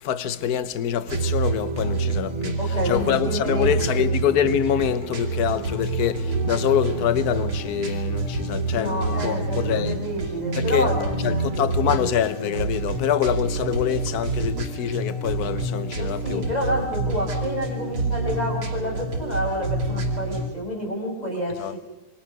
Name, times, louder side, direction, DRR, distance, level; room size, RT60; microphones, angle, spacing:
voice 1, 0.0-2.6 2.8-10.0 10.5-10.9 11.2-16.4 21.6-21.7, left 9 dB, 55° left, 1.5 m, -25 dB
sound 1, 1.1-20.5, right 3 dB, 85° right, 3.9 m, -27 dB
voice 2, 2.6-4.1 8.7-11.5 16.0-21.8, equal, 20° left, 5.7 m, -29 dB
27.0 x 23.5 x 6.6 m
omnidirectional pair, 2.3 m